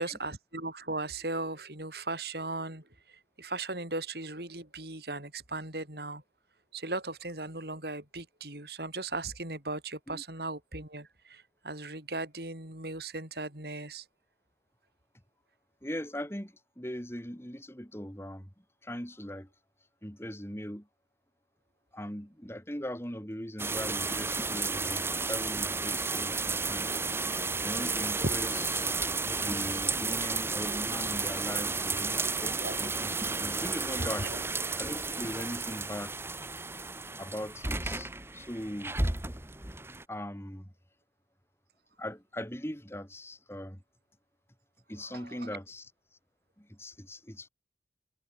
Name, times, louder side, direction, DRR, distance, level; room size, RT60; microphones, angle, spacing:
voice 1, 0.0-2.8 3.4-6.2 6.7-14.1 28.2-28.3 32.4-32.8 34.0-34.4 45.0-45.4, right 2 dB, 65° right, 6.9 m, -37 dB
voice 2, 15.8-18.5 18.8-19.5 20.0-20.9 21.9-27.0 27.6-28.9 29.4-34.3 34.8-36.1 37.2-39.0 40.1-40.7 42.0-43.8 44.9-45.9 46.6-47.5, equal, 15° left, 7.9 m, -40 dB
sound 1, 23.6-40.0, right 3 dB, 15° right, 1.4 m, -32 dB
head